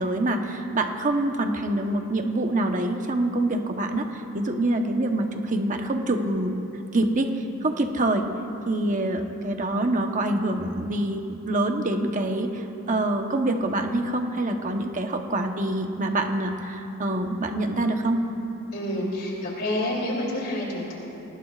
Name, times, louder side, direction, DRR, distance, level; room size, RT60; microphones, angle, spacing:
voice 1, 0.0-6.6 6.9-7.3 7.6-8.3 8.7-18.2, right 1 dB, 35° right, 4 dB, 1.0 m, -25 dB
voice 2, 18.7-20.9, left 1 dB, 45° left, -3 dB, 3.2 m, -28 dB
25.0 x 19.0 x 2.5 m, 2.9 s
head